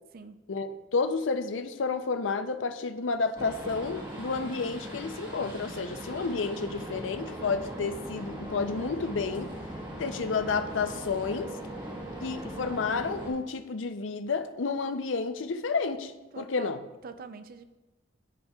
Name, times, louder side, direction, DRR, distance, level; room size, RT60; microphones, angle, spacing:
voice 1, 0.5-9.5 10.0-11.5 12.2-16.8, left 4 dB, 90° left, 10 dB, 0.6 m, -31 dB
sound 1, 3.4-13.3, right 1 dB, 25° right, 1.8 m, -39 dB
voice 2, 16.3-16.7 17.0-17.6, right 4 dB, 50° right, 10 dB, 0.4 m, -44 dB
14.5 x 5.6 x 2.3 m, 1.1 s
head